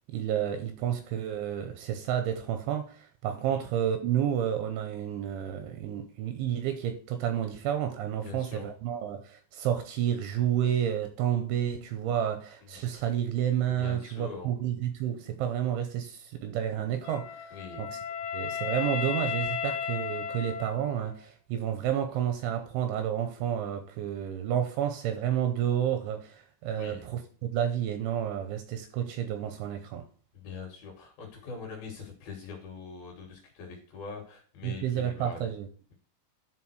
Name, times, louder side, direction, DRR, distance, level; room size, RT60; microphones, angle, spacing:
voice 1, 0.1-18.0 18.3-30.0 34.6-35.7, right 10 dB, 85° right, 2.8 m, -30 dB
voice 2, 8.1-8.7 12.6-12.8 13.8-14.5 17.5-17.8 24.1-24.2 26.7-27.0 30.3-35.5, left 5 dB, 65° left, 2.7 m, -43 dB
Wind instrument woodwind instrument, 17.0-21.2, left 7 dB, 80° left, 3.1 m, -34 dB
11.0 x 3.7 x 4.6 m
omnidirectional pair, 5.8 m